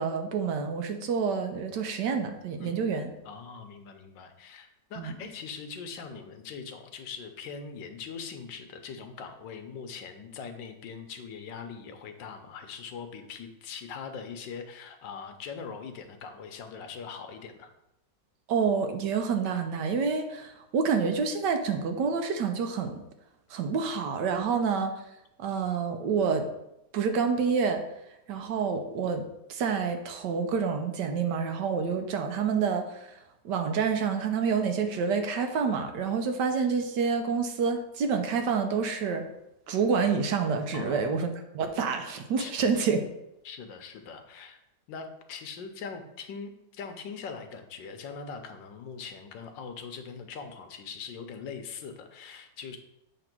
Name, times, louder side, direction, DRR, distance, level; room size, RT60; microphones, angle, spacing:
voice 1, 0.0-3.1 5.0-5.1 18.5-23.0 23.5-25.0 25.4-26.5 26.9-27.8 28.3-33.2 33.4-39.3 39.7-43.0, right 5 dB, 75° right, 6 dB, 1.3 m, -28 dB
voice 2, 3.2-17.7 40.7-41.2 42.4-42.8 43.4-44.6 44.9-52.8, left 6 dB, 85° left, 6 dB, 1.5 m, -41 dB
7.9 x 3.0 x 6.0 m, 0.84 s
omnidirectional pair, 1.9 m